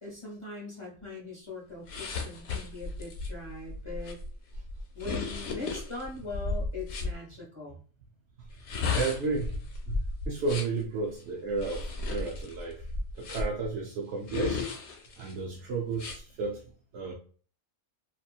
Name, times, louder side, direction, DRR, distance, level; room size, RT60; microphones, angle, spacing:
voice 1, 0.0-4.2 4.9-7.8, left 3 dB, 30° left, -4 dB, 0.6 m, -41 dB
sound 1, 1.9-7.1 8.5-10.8 11.5-13.7 14.3-15.3 15.9-16.2, left 3 dB, 70° left, 0.8 m, -34 dB
voice 2, 9.0-9.6 9.9-10.0 10.3-12.8 13.1-14.6 15.2-16.6 16.9-17.1, right 4 dB, 70° right, -2 dB, 0.8 m, -32 dB
2.9 x 2.4 x 2.3 m, 0.41 s
omnidirectional pair, 1.3 m